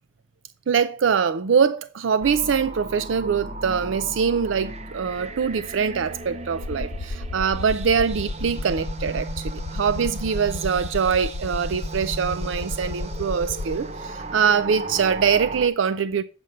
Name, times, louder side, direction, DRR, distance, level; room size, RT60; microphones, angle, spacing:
voice 1, 0.7-16.2, right 6 dB, 80° right, 0.4 m, -23 dB
sound 1, 2.2-15.7, right 2 dB, 35° right, 0.7 m, -36 dB
sound 2, 6.5-13.8, left 2 dB, 60° left, 0.5 m, -32 dB
7.8 x 5.2 x 6.6 m
head